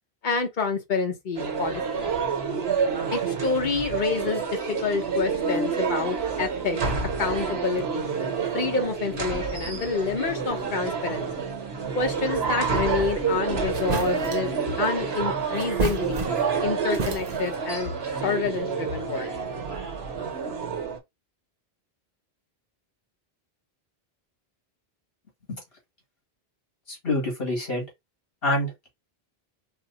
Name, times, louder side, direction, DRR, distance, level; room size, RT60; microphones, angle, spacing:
voice 1, 0.2-2.1 3.1-6.8 7.2-8.1 8.5-11.5 11.9-14.5 14.8-16.3 16.6-17.9 18.2-19.3, left 4 dB, 50° left, 1.1 m, -28 dB
sound 1, 1.4-21.0, right 5 dB, 80° right, 1.3 m, -28 dB
sound 2, 13.3-13.4 13.7-14.5 15.6-16.6 16.9-17.6, right 4 dB, 45° right, 0.8 m, -30 dB
voice 2, 27.0-27.8 28.4-28.9, left 1 dB, 65° left, 2.4 m, -26 dB
4.7 x 2.1 x 4.1 m
omnidirectional pair, 1.0 m